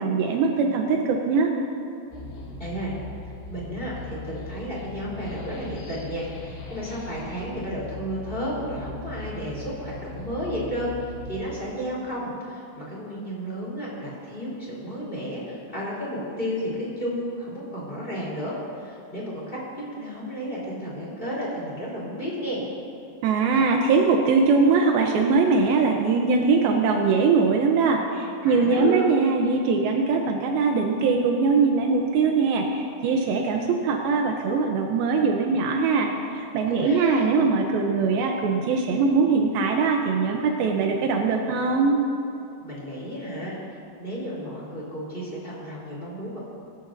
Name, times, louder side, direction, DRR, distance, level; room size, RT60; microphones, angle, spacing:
voice 1, 0.0-1.5 23.2-42.0, right 4 dB, 85° right, 2 dB, 2.1 m, -22 dB
sound 1, 2.1-11.5, left 2 dB, 85° left, 4.7 m, -39 dB
voice 2, 2.6-2.9 3.5-19.6 19.9-22.6 28.4-29.0 36.7-37.3 42.6-43.6 44.0-46.4, equal, 15° left, -5 dB, 3.2 m, -32 dB
25.5 x 12.5 x 2.7 m, 2.8 s
omnidirectional pair, 5.4 m